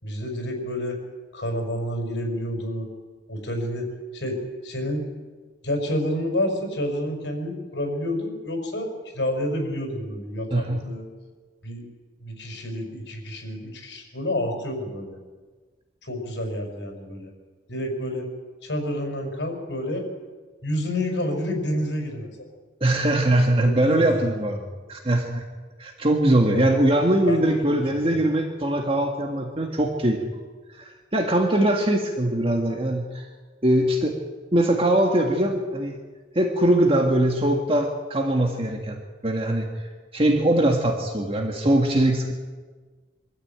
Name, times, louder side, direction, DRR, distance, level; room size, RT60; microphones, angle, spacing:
voice 1, 0.0-1.0 1.3-2.9 3.3-3.9 4.1-4.4 4.6-5.0 5.6-11.1 11.6-11.9 12.2-15.2 16.0-17.3 17.7-18.3 18.6-20.1 20.6-22.3 23.6-24.4 26.5-26.7 27.3-27.8 28.1-28.2, left 1 dB, 75° left, 2 dB, 5.4 m, -29 dB
voice 2, 10.5-10.8 22.8-25.4 25.8-30.4 30.8-33.2 33.6-34.1 34.5-36.0 36.4-42.3, right 1 dB, 30° right, 2 dB, 1.8 m, -22 dB
23.5 x 13.5 x 8.8 m, 1.4 s
head